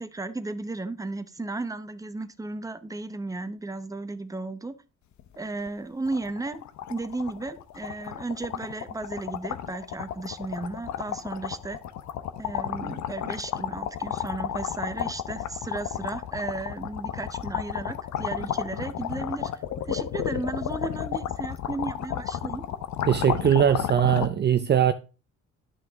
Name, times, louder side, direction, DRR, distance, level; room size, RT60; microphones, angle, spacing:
voice 1, 0.0-4.7 5.4-6.6 6.9-11.8 12.4-19.5 19.9-22.6, right 2 dB, 10° right, 0.8 m, -34 dB
sound 1, 5.2-5.4 5.7-5.8 6.1-24.3, left 10 dB, 70° left, 0.8 m, -32 dB
voice 2, 23.1-24.9, right 9 dB, 35° right, 0.5 m, -21 dB
10.5 x 5.8 x 3.6 m
cardioid pair, 90°, 30 cm